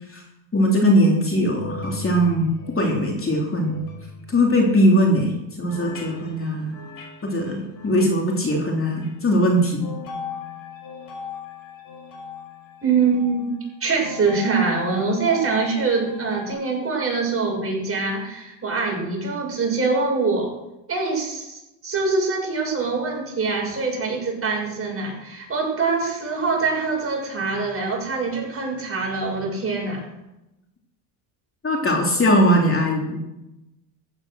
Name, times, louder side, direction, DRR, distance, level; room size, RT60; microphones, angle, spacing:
voice 1, 0.5-2.5 2.7-3.8 4.3-6.8 7.2-9.9 31.6-33.3, equal, 25° left, 0 dB, 3.2 m, -20 dB
sound 1, 1.2-5.1 5.7-8.3 8.8-9.1 9.8-16.5, left 5 dB, 45° left, 6.2 m, -39 dB
voice 2, 12.8-20.5 20.9-30.0, right 4 dB, 30° right, -1 dB, 7.0 m, -24 dB
15.0 x 9.8 x 6.3 m, 0.94 s
supercardioid pair, 95°, 47 cm